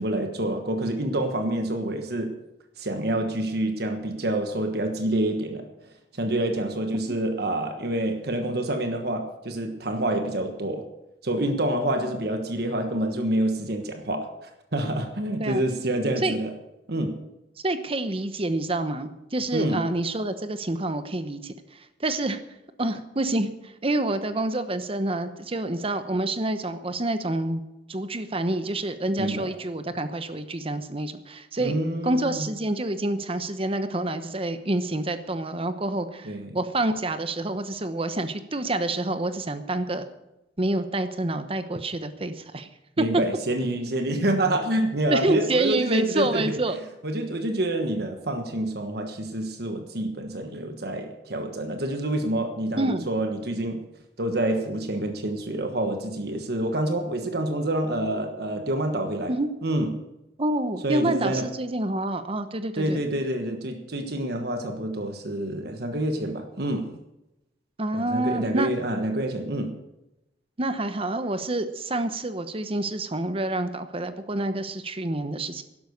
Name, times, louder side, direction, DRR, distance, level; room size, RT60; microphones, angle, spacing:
voice 1, 0.0-2.3 2.8-5.7 6.1-10.9 11.2-16.5 16.9-17.2 19.5-19.8 29.2-29.5 31.6-32.5 36.2-36.5 43.0-46.6 47.0-53.8 54.2-59.3 59.6-59.9 60.8-61.5 62.7-66.9 67.9-69.7, right 1 dB, 65° right, 6 dB, 1.3 m, -27 dB
voice 2, 17.6-21.5 22.0-22.4 22.8-27.6 27.9-31.7 32.0-40.1 40.6-42.7 43.0-43.1 45.1-46.8 52.7-53.0 59.3-59.5 60.4-63.0 67.8-68.7 70.6-75.6, right 2 dB, 35° right, 10 dB, 1.0 m, -27 dB
12.0 x 11.5 x 6.6 m, 0.94 s
head